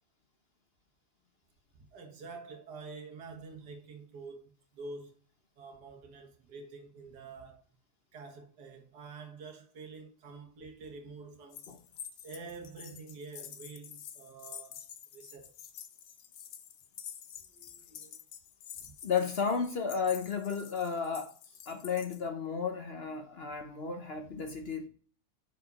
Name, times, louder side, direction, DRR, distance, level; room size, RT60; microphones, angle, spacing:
voice 1, 1.7-5.2 5.6-7.6 8.1-11.7 12.2-14.9 15.1-15.5 17.5-18.2, right 4 dB, 75° right, 1.9 m, -47 dB
sound 1, 11.5-22.2, left 9 dB, 65° left, 1.1 m, -49 dB
voice 2, 19.0-21.3 21.7-24.9, left 6 dB, 50° left, 0.8 m, -33 dB
6.3 x 4.7 x 4.0 m
omnidirectional pair, 1.8 m